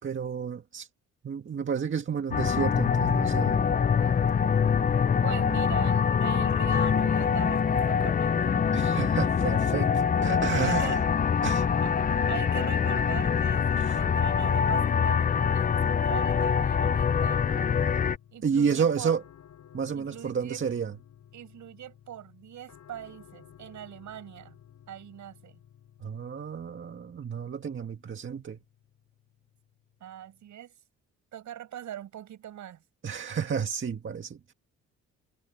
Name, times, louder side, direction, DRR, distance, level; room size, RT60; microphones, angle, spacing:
voice 1, 0.0-0.9 1.2-3.6 8.7-11.0 11.4-11.7 13.8-14.0 18.4-19.2 19.7-20.9 26.0-28.6 33.0-34.5, right 6 dB, 40° right, 1.9 m, -31 dB
sound 1, 2.3-18.2, left 7 dB, 30° left, 0.6 m, -24 dB
voice 2, 5.2-8.7 10.6-11.0 11.8-11.9 12.3-15.3 15.5-17.7 18.3-19.1 19.9-20.6 21.3-24.6 24.9-25.6 30.0-30.7 31.3-32.8, right 11 dB, 70° right, 7.1 m, -41 dB
sound 2, 11.6-30.5, left 10 dB, 65° left, 7.8 m, -55 dB
cardioid pair, 90°, 30 cm